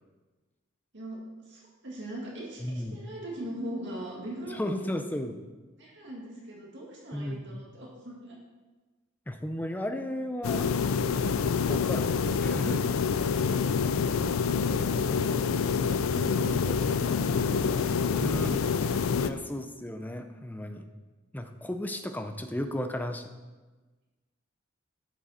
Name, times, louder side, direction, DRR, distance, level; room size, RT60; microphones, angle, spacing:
voice 1, 1.4-4.9 5.8-8.4 13.3-13.6 14.1-18.9, right 1 dB, 60° right, -3 dB, 2.0 m, -41 dB
voice 2, 2.6-3.0 4.5-5.4 7.1-7.6 9.3-10.7 11.7-12.1 12.4-12.8 18.2-18.7 19.2-20.8 21.3-23.2, left 1 dB, 10° left, 7 dB, 0.5 m, -34 dB
sound 1, 10.4-19.3, left 6 dB, 80° left, 0.4 m, -27 dB
11.0 x 6.1 x 4.2 m, 1.3 s
head